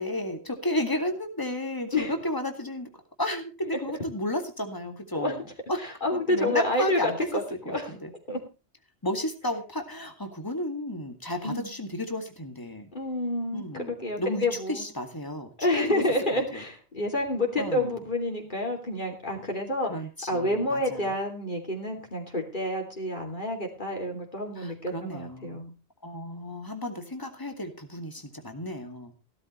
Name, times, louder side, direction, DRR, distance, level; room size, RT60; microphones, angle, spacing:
voice 1, 0.0-2.9 3.2-5.8 6.1-7.3 7.6-8.1 9.0-12.9 13.5-16.0 16.3-16.6 17.6-18.0 19.9-21.1 24.6-25.6 26.0-29.1, left 1 dB, 20° left, 6 dB, 2.2 m, -33 dB
voice 2, 6.0-7.9 8.3-8.4 11.4-11.7 12.9-14.8 15.6-19.9 20.3-25.7, left 1 dB, 45° left, 1 dB, 3.1 m, -29 dB
16.5 x 12.5 x 3.2 m, 0.32 s
omnidirectional pair, 1.1 m